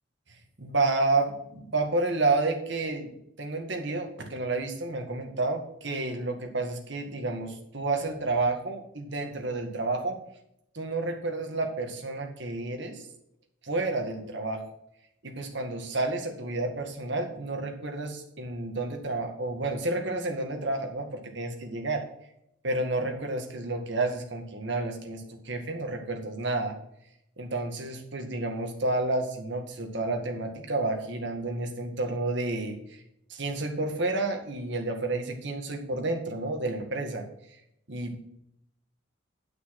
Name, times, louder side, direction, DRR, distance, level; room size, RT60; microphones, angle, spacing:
voice 1, 0.6-3.1 3.4-10.2 10.7-13.0 13.6-14.6 15.2-22.0 22.6-26.8 27.4-33.0 33.3-37.2 37.9-38.2, right 2 dB, 60° right, 3 dB, 1.8 m, -30 dB
9.9 x 5.9 x 5.8 m, 0.78 s
head